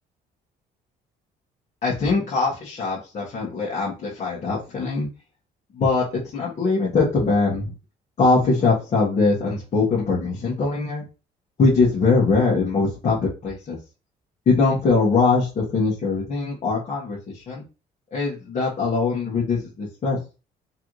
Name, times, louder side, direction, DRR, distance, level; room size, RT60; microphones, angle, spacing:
voice 1, 1.8-5.1 5.7-6.0 6.3-7.7 8.2-11.0 11.6-13.2 13.4-13.8 14.4-17.6 18.1-20.2, left 4 dB, 45° left, -6 dB, 1.6 m, -22 dB
4.0 x 3.3 x 3.1 m, 0.31 s
cardioid pair, 110°, 17 cm